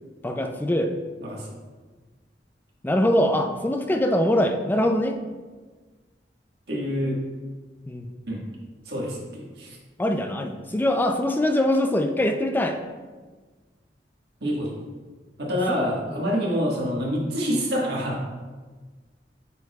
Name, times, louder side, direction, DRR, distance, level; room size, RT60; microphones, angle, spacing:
voice 1, 0.2-0.9 2.8-5.2 7.9-8.1 10.0-12.8 15.8-16.2, left 1 dB, 10° left, 5 dB, 0.4 m, -23 dB
voice 2, 1.2-1.6 6.7-7.2 8.3-8.4 8.8-9.8 14.4-14.7 15.4-18.2, equal, 65° right, -3 dB, 1.5 m, -27 dB
8.8 x 4.6 x 2.3 m, 1.4 s
head